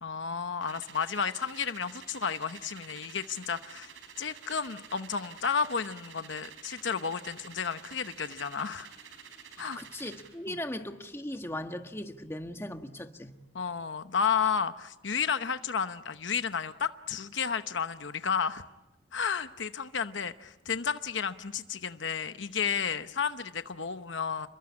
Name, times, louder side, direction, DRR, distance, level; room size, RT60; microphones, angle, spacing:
voice 1, 0.0-3.9 4.2-8.9 9.6-9.8 10.5-10.6 13.5-18.6 19.1-24.5, left 6 dB, 70° left, 0.9 m, -32 dB
sound 1, 0.6-10.4, right 7 dB, 90° right, 4.4 m, -50 dB
voice 2, 9.6-13.3, left 1 dB, 15° left, 1.6 m, -38 dB
29.0 x 22.0 x 8.6 m
head